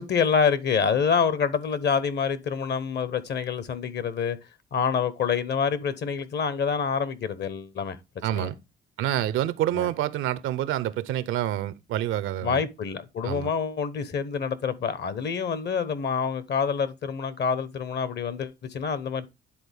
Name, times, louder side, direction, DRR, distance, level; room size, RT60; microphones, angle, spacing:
voice 1, 0.0-4.4 4.7-8.0 8.3-8.5 9.8-9.9 12.4-19.3, left 6 dB, 60° left, 1.0 m, -27 dB
voice 2, 8.2-8.5 9.0-12.6 13.2-13.5, right 12 dB, 90° right, 0.6 m, -27 dB
9.9 x 3.9 x 3.4 m
cardioid pair, 90°, 20 cm